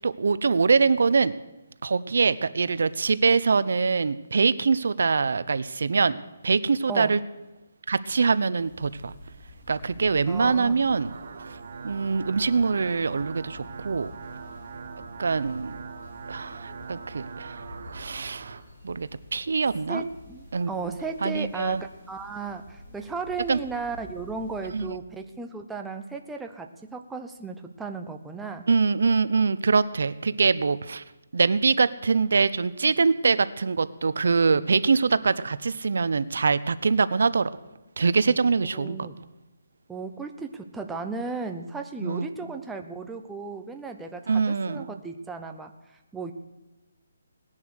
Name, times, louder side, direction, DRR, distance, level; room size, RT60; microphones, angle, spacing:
voice 1, 0.0-1.4 1.8-6.2 6.4-7.2 7.9-9.1 9.7-11.1 11.8-14.1 15.2-15.8 16.3-17.6 17.9-18.5 18.8-20.0 20.5-20.9 21.2-21.8 23.5-23.6 24.7-24.9 28.7-31.0 31.3-37.5 38.0-39.1 42.0-42.3 44.3-45.0, right 4 dB, 70° right, 15 dB, 0.7 m, -24 dB
sound 1, 8.5-24.9, left 1 dB, 25° left, 7.3 m, -48 dB
voice 2, 10.2-10.8 19.9-28.7 38.7-39.2 39.9-45.7 46.1-46.3, right 4 dB, 5° right, 4 dB, 0.7 m, -35 dB
sound 2, 10.7-18.6, right 5 dB, 50° right, 1.4 m, -42 dB
18.5 x 11.0 x 6.5 m, 1.1 s
hypercardioid pair, 165°, 0 cm